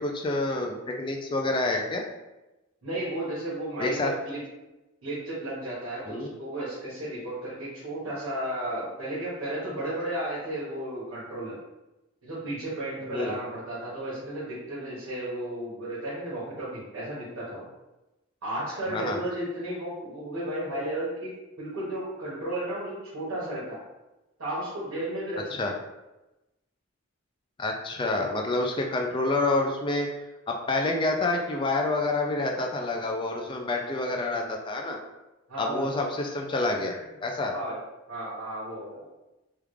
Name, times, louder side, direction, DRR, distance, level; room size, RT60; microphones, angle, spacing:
voice 1, 0.0-2.0 3.8-4.1 6.1-6.3 13.1-13.4 18.9-19.2 25.6-25.7 27.6-30.1 30.5-35.0 35.6-36.9 37.2-37.5, left 2 dB, 25° left, 2 dB, 0.3 m, -28 dB
voice 2, 2.8-4.4 5.0-11.5 12.2-17.6 18.4-21.3 21.6-23.8 24.4-25.8 35.5-35.9 36.9-37.1 37.5-37.8 38.1-39.0, right 1 dB, 80° right, -9 dB, 1.2 m, -33 dB
3.4 x 2.4 x 3.1 m, 1.0 s
head